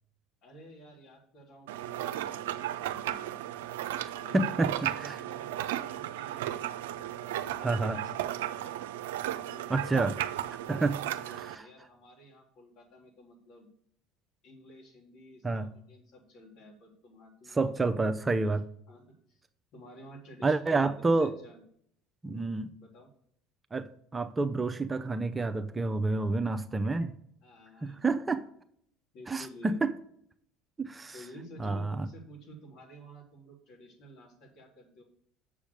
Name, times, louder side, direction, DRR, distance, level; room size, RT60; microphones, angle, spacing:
voice 1, 0.4-3.4 4.2-8.7 9.5-13.7 14.4-17.7 18.9-19.0 19.3-19.4 19.7-21.6 22.3-23.1 26.8-27.1 27.4-28.3 29.1-29.8 31.1-35.0, equal, 60° left, -2 dB, 3.3 m, -52 dB
sound 1, 1.7-11.5, right 12 dB, 85° right, 0.4 m, -35 dB
voice 2, 4.0-4.7 5.0-5.1 7.6-8.0 9.7-10.1 10.7-11.0 11.3-11.7 15.4-15.7 17.5-18.6 20.4-21.3 22.2-22.7 23.7-27.1 27.8-28.4 29.3-29.9 30.8-31.1 31.6-32.1, right 3 dB, 20° right, 11 dB, 0.6 m, -29 dB
7.3 x 5.0 x 6.7 m, 0.66 s
hypercardioid pair, 75°, 0 cm